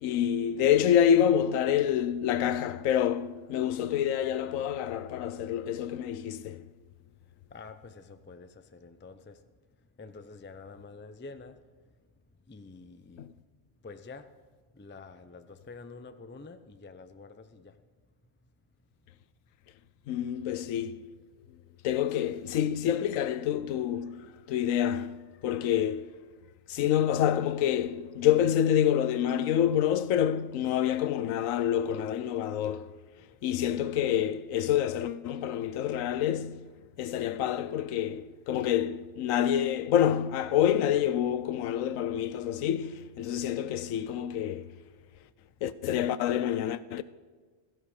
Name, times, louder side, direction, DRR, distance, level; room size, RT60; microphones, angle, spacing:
voice 1, 0.0-6.6 13.2-13.3 20.1-21.1 21.8-26.1 26.7-32.9 33.4-36.6 37.0-44.7 45.6-47.0, left 10 dB, 85° left, 1.0 m, -27 dB
voice 2, 7.2-9.5 10.0-11.9 12.5-13.3 13.8-14.4 14.7-17.8 22.1-22.2, left 4 dB, 15° left, 0.4 m, -48 dB
16.0 x 14.0 x 5.0 m
omnidirectional pair, 1.3 m